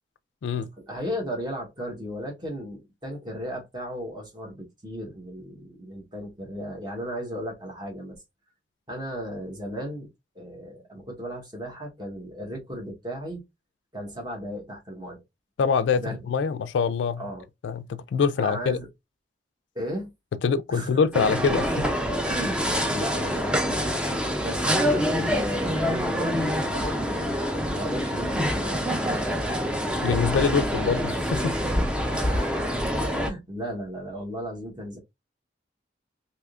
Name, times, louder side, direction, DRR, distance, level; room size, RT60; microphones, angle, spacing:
voice 1, 0.8-8.2 8.9-10.1 10.3-13.4 13.9-15.2 16.0-16.2 17.2-17.4 18.4-18.9 19.7-20.1 20.7-21.0 22.2-22.6 22.9-24.1 24.4-27.2 27.7-29.0 32.1-32.6 33.2-35.0, equal, 25° right, 1.0 m, -35 dB
voice 2, 15.6-17.2 17.6-18.8 20.4-21.9 30.0-31.5, left 5 dB, 75° left, 0.3 m, -24 dB
sound 1, 21.1-33.3, equal, 5° right, 0.4 m, -26 dB
3.5 x 2.8 x 2.4 m
head